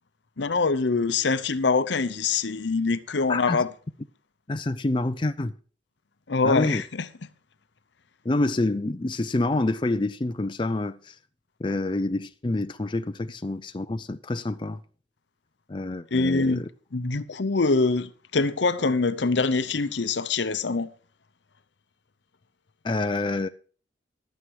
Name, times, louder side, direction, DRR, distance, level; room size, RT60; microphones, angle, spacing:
voice 1, 0.4-3.7 6.3-7.1 16.1-16.6 16.9-20.9, left 4 dB, 65° left, 0.8 m, -24 dB
voice 2, 3.3-3.6 4.5-5.5 6.4-6.8 8.2-11.1 11.6-14.8 15.7-16.7 22.8-23.5, left 2 dB, 25° left, 0.5 m, -27 dB
12.5 x 9.4 x 4.7 m
head